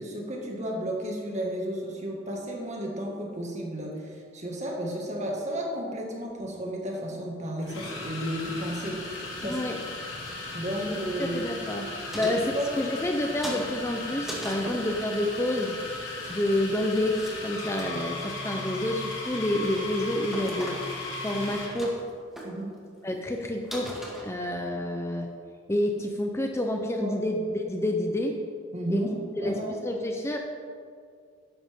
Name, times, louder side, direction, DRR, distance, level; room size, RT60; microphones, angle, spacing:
voice 1, 0.0-9.0 9.4-9.6 10.5-11.4 12.2-12.7 22.4-22.7 27.0-27.1 28.7-29.8, equal, 35° right, -1 dB, 2.1 m, -33 dB
sound 1, 6.3-6.5 7.6-21.8, left 2 dB, 70° left, 2.5 m, -37 dB
voice 2, 9.4-9.8 10.9-11.9 12.1-15.8 16.3-20.8 21.2-22.0 23.0-25.3 25.7-28.4 28.9-29.0 29.4-30.4, left 1 dB, 15° left, 3 dB, 0.7 m, -29 dB
sound 2, 12.1-13.2 13.4-14.7 16.0-16.7 17.0-17.4 17.6-18.3 18.8-19.2 19.6-19.9 20.3-21.1 21.4-22.1 22.4-22.5 23.0-23.1 23.3-23.4 23.7-24.7, right 1 dB, ahead, 2.0 m, -39 dB
12.5 x 11.0 x 3.7 m, 2.2 s
head